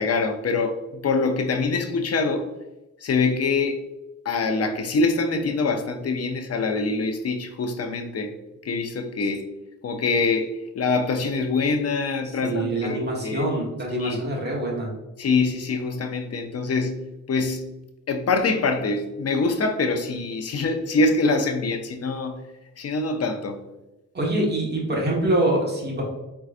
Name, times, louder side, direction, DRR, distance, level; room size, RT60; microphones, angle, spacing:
voice 1, 0.0-2.5 3.0-3.8 4.2-8.3 8.6-9.5 9.8-13.5 14.0-14.2 15.2-17.7 18.1-22.4 22.8-23.6, left 3 dB, 55° left, 6 dB, 0.6 m, -24 dB
voice 2, 12.4-14.9 24.1-26.0, right 1 dB, 35° right, -3 dB, 1.4 m, -25 dB
4.5 x 3.8 x 2.5 m, 0.98 s
wide cardioid pair, 120°, 30 cm